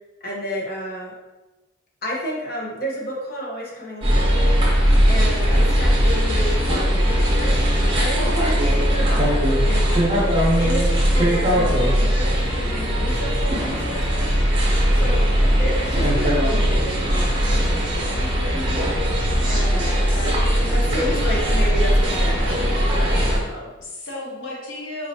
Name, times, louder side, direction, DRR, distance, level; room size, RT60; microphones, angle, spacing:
voice 1, 0.2-1.1 2.0-4.5 5.1-7.6 7.9-10.0 10.6-12.3 12.6-14.4 14.9-15.3 15.5-18.9 19.4-23.7, equal, 55° left, -3 dB, 1.1 m, -31 dB
sound 1, 4.0-23.4, equal, 25° right, 1.1 m, -19 dB
voice 2, 5.4-5.7 8.2-8.6 23.8-25.1, left 1 dB, 80° left, -4 dB, 0.9 m, -33 dB
4.7 x 2.8 x 2.9 m, 1.1 s
head